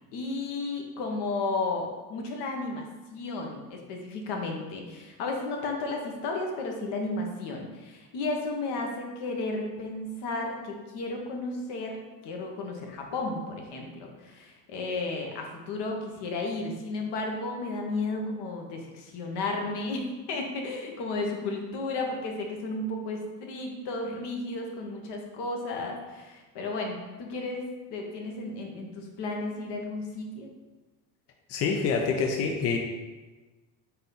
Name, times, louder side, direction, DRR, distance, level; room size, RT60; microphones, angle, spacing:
voice 1, 0.1-2.8 3.1-30.5, left 2 dB, 55° left, 1 dB, 1.0 m, -33 dB
voice 2, 31.5-32.8, left 5 dB, 35° left, 3 dB, 0.4 m, -26 dB
4.0 x 2.7 x 3.9 m, 1.2 s
hypercardioid pair, 75°, 48 cm